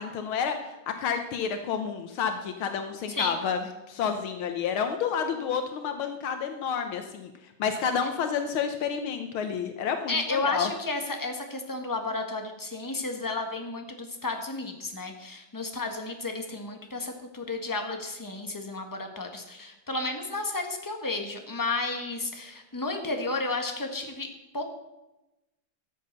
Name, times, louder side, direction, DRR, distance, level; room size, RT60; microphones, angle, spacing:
voice 1, 0.0-3.6 3.9-7.3 7.6-10.7, left 7 dB, 80° left, 7 dB, 1.7 m, -30 dB
voice 2, 3.1-3.4 10.1-24.3 24.5-24.6, left 3 dB, 10° left, 4 dB, 1.2 m, -32 dB
14.0 x 7.6 x 6.7 m, 0.98 s
omnidirectional pair, 2.3 m